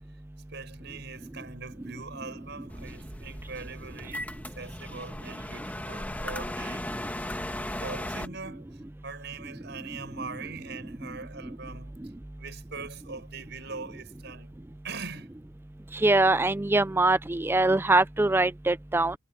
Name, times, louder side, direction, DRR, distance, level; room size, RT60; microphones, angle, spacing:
voice 1, 0.5-4.3 4.6-6.8 7.3-7.4 7.8-8.7 9.0-11.9 12.4-14.5 14.8-15.3, right 4 dB, 60° right, 7.6 m, -42 dB
sound 1, 2.7-8.3, left 1 dB, 10° left, 1.9 m, -37 dB
voice 2, 16.0-19.1, right 2 dB, 10° right, 0.4 m, -23 dB
head